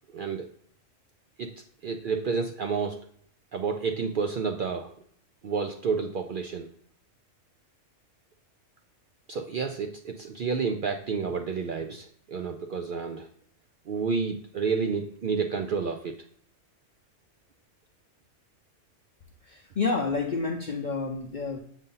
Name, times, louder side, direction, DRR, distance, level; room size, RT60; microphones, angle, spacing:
voice 1, 0.1-0.5 1.4-1.5 1.8-3.1 3.5-4.9 5.4-6.7 9.3-13.3 13.9-16.2, right 5 dB, 60° right, 5 dB, 0.6 m, -30 dB
voice 2, 19.4-21.6, left 4 dB, 50° left, 0 dB, 0.7 m, -29 dB
7.2 x 2.6 x 5.5 m, 0.62 s
omnidirectional pair, 1.3 m